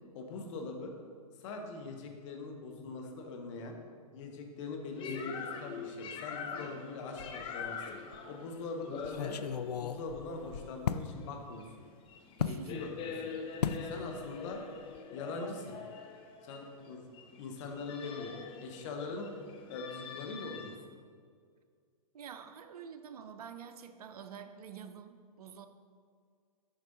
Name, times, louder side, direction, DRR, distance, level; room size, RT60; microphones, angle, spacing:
voice 1, 0.1-1.0 1.4-3.8 4.1-9.4 9.8-11.7 12.4-13.3 13.8-14.6 15.1-15.8 16.4-17.0 17.4-18.3 18.6-19.3 19.7-20.7, left 3 dB, 50° left, 3 dB, 1.3 m, -42 dB
sound 1, 5.0-20.8, left 5 dB, 25° left, 0.8 m, -44 dB
sound 2, 7.2-7.8 8.1-8.2 9.0-11.1 12.4-12.6 13.6-13.9 14.2-14.5 14.8-15.0, left 7 dB, 85° left, 0.4 m, -35 dB
voice 2, 12.4-12.9 22.1-25.7, right 7 dB, 70° right, 9 dB, 0.6 m, -48 dB
8.9 x 5.4 x 4.0 m, 2.1 s
hypercardioid pair, 120°, 20 cm